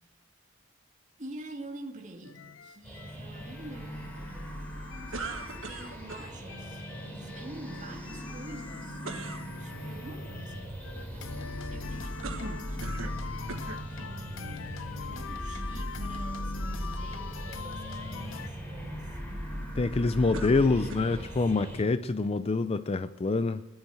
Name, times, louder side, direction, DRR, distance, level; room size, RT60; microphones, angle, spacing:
voice 1, 1.2-4.7 4.9-9.0 9.4-13.4 13.9-19.2 20.2-21.4, right 1 dB, 40° right, 2.2 m, -47 dB
sound 1, 2.2-18.5, left 5 dB, 75° left, 0.7 m, -43 dB
sound 2, 2.8-21.8, equal, 10° left, 3.2 m, -39 dB
sound 3, 5.1-6.3 9.0-9.5 12.2-13.2 13.5-13.9 14.7-14.8 20.3-21.2, right 3 dB, 85° right, 1.4 m, -40 dB
voice 2, 19.8-23.7, left 3 dB, 30° left, 0.4 m, -26 dB
17.5 x 10.5 x 7.7 m
head